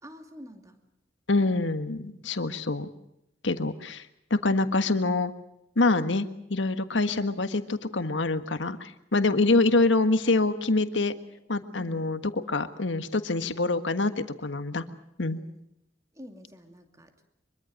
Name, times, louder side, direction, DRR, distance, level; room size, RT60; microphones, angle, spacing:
voice 1, 0.0-0.8 11.8-12.1 15.3-15.7 16.1-17.2, equal, 20° right, 6 dB, 2.6 m, -47 dB
voice 2, 1.3-2.9 3.4-4.0 4.3-5.3 5.7-11.1 11.5-12.2 12.5-14.8 15.2-15.4, left 2 dB, 85° left, 10 dB, 1.5 m, -25 dB
24.5 x 23.0 x 6.5 m, 0.81 s
head